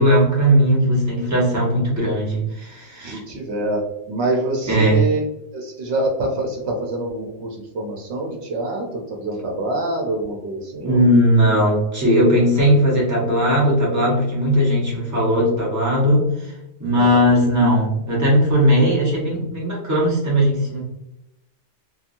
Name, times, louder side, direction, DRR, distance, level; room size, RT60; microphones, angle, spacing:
voice 1, 0.0-3.2 4.7-5.0 10.8-20.8, equal, 15° right, -5 dB, 0.9 m, -18 dB
voice 2, 3.0-5.2 5.5-11.0 17.0-17.3, right 2 dB, 75° right, 0 dB, 0.9 m, -25 dB
2.9 x 2.3 x 2.5 m, 0.87 s
omnidirectional pair, 1.2 m